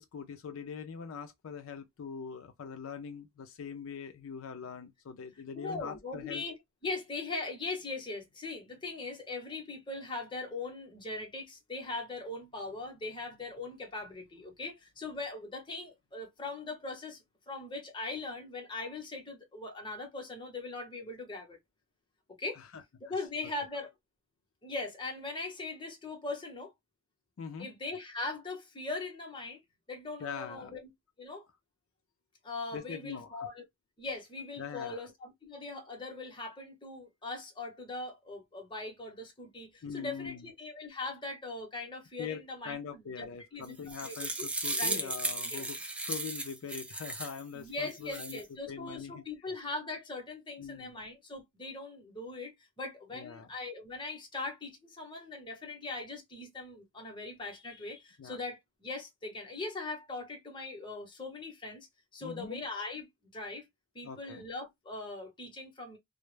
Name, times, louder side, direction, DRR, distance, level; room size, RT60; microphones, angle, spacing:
voice 1, 0.0-6.4 22.6-22.8 27.4-27.7 30.2-30.7 32.7-33.5 34.6-35.0 39.8-40.5 42.2-48.4 48.7-49.2 50.6-51.0 53.1-53.5 58.2-58.4 62.2-62.6 64.0-64.5, left 6 dB, 75° left, 0.4 m, -42 dB
voice 2, 5.5-6.6 6.8-21.6 22.4-22.6 23.0-23.9 24.6-26.7 27.6-29.6 29.9-30.9 31.2-31.5 32.4-33.6 34.0-43.3 43.5-44.5 44.8-45.1 45.4-45.7 47.5-61.9 62.1-63.7 63.9-66.0, left 3 dB, 25° left, 0.8 m, -40 dB
sound 1, 43.6-47.4 47.9-48.4, right 2 dB, 5° right, 0.3 m, -35 dB
2.1 x 2.0 x 3.0 m
head